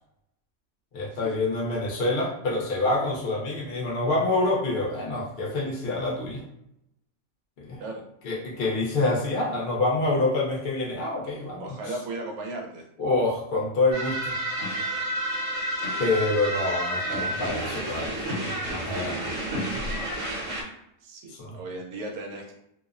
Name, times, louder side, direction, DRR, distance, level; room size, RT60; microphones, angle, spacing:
voice 1, 0.9-6.4 7.6-7.8 8.2-11.7 13.0-14.3 16.0-18.3 18.7-19.3 19.7-19.8 21.3-21.6, left 2 dB, 55° left, -3 dB, 0.7 m, -27 dB
voice 2, 11.6-12.9 21.0-22.5, right 2 dB, 90° right, 1 dB, 1.0 m, -36 dB
sound 1, 13.9-20.6, right 1 dB, 65° right, 1.1 m, -30 dB
2.6 x 2.0 x 2.3 m, 0.77 s
omnidirectional pair, 1.5 m